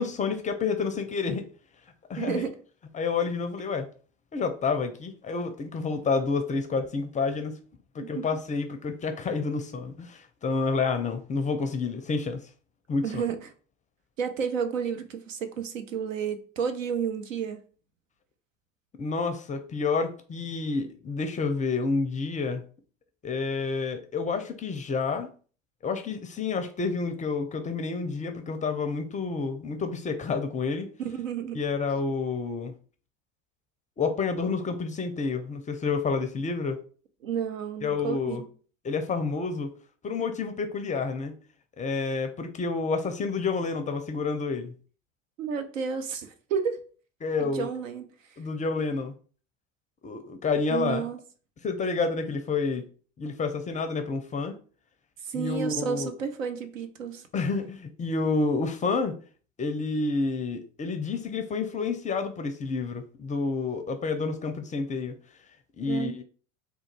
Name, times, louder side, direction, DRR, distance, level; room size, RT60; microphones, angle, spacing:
voice 1, 0.0-1.5 2.1-2.4 2.9-3.9 4.3-7.5 7.9-12.4 12.9-13.2 19.0-22.6 23.2-25.3 25.8-30.9 31.5-32.7 34.0-36.8 37.8-38.4 38.8-39.7 40.0-41.3 41.8-44.7 47.2-47.7 48.4-49.1 50.0-51.0 51.6-52.9 53.2-54.5 55.3-56.1 57.3-59.2 59.6-65.1 65.8-66.2, left 4 dB, 20° left, 0.5 m, -29 dB
voice 2, 2.2-2.6 8.0-8.3 13.0-13.5 14.2-17.6 31.0-31.6 37.2-38.5 45.4-46.8 47.4-48.0 50.7-51.2 55.2-57.3 65.8-66.2, right 7 dB, 75° right, 0.8 m, -31 dB
3.7 x 2.3 x 4.4 m
figure-of-eight pair, 75°, 40 cm